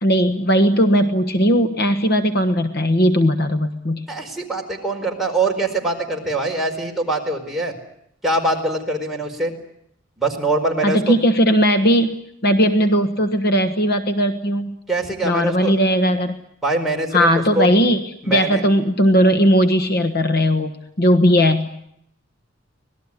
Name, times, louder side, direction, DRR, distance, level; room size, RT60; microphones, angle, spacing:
voice 1, 0.0-4.0 10.8-14.8 15.2-16.3 17.1-21.8, equal, 50° left, 8 dB, 1.4 m, -18 dB
voice 2, 4.1-7.7 8.2-9.5 10.2-11.1 14.9-15.8 16.6-17.7 18.2-18.6, right 2 dB, ahead, -1 dB, 4.6 m, -23 dB
25.5 x 19.5 x 9.8 m, 0.75 s
head